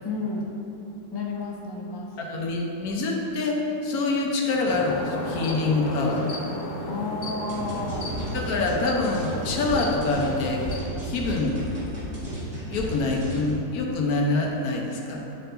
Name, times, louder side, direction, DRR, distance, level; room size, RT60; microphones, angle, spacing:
voice 1, 0.0-0.5 1.1-2.1 6.8-8.1, left 3 dB, 35° left, -2 dB, 0.4 m, -31 dB
voice 2, 2.2-6.3 8.3-10.7 11.0-11.6 12.7-15.2, left 3 dB, 70° left, 0 dB, 1.3 m, -25 dB
sound 1, 4.7-10.8, left 2 dB, 90° left, 1.7 m, -34 dB
sound 2, 7.5-13.5, right 1 dB, 35° right, 2.0 m, -33 dB
9.4 x 4.6 x 3.8 m, 2.9 s
omnidirectional pair, 1.7 m